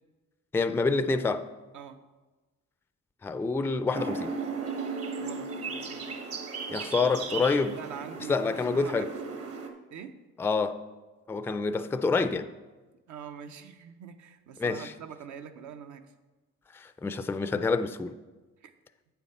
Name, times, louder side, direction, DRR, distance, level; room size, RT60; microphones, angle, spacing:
voice 1, 0.5-1.5 3.2-4.3 6.7-7.7 8.3-9.1 10.4-10.8 11.3-12.5 14.6-14.9 16.7-18.1, left 4 dB, 10° left, 0.3 m, -27 dB
sound 1, 3.9-9.7, right 4 dB, 50° right, 1.1 m, -36 dB
voice 2, 5.2-6.1 7.6-9.1 9.9-10.2 13.1-16.1 18.6-18.7, right 7 dB, 75° right, 0.8 m, -44 dB
8.4 x 7.1 x 4.3 m
cardioid pair, 90°, 30 cm